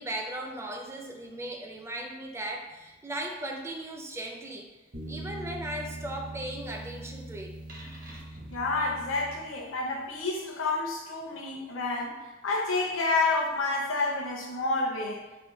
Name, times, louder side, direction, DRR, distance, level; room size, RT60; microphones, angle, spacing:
voice 1, 0.0-4.7 5.1-7.5, right 1 dB, 15° right, 1 dB, 0.4 m, -37 dB
sound 1, 4.9-9.9, right 1 dB, 45° right, 0.7 m, -41 dB
voice 2, 8.5-15.2, left 3 dB, 80° left, 0 dB, 0.7 m, -29 dB
3.7 x 2.1 x 4.4 m, 1.1 s
head